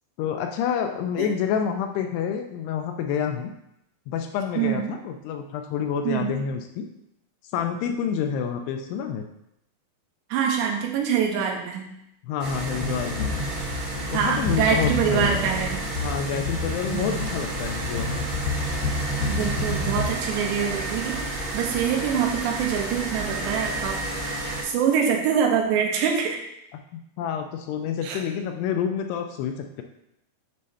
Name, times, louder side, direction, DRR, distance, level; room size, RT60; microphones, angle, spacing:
voice 1, 0.2-3.5 4.1-6.9 7.5-9.3 12.2-13.3 14.1-15.3 16.0-18.3 26.9-29.8, left 8 dB, 85° left, 5 dB, 2.5 m, -28 dB
voice 2, 4.6-5.0 6.0-6.4 10.3-11.9 14.1-15.8 16.9-17.1 19.3-24.0 24.6-26.4 28.0-28.2, right 7 dB, 85° right, 2 dB, 3.1 m, -25 dB
sound 1, 12.4-24.6, right 2 dB, 40° right, 2.2 m, -31 dB
sound 2, 12.7-20.0, left 2 dB, 60° left, 3.2 m, -30 dB
7.5 x 3.2 x 5.4 m, 0.81 s
omnidirectional pair, 5.0 m